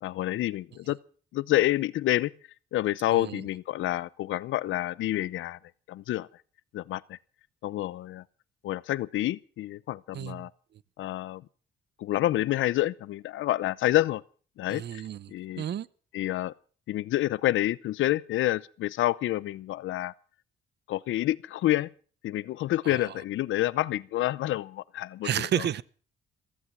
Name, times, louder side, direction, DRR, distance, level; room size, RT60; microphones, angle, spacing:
voice 1, 0.0-1.0 1.3-2.3 2.7-5.6 5.9-6.3 6.7-7.2 7.6-8.2 8.6-10.5 11.0-11.4 12.0-14.2 14.6-15.0 15.3-15.6 16.1-16.5 16.9-20.1 20.9-21.9 22.2-25.3, left 15 dB, 80° left, 0.7 m, -28 dB
voice 2, 3.1-3.5 10.1-10.8 14.7-15.9 22.8-23.1 25.2-25.8, right 10 dB, 60° right, 0.8 m, -32 dB
15.5 x 14.5 x 6.0 m
cardioid pair, 90°, 20 cm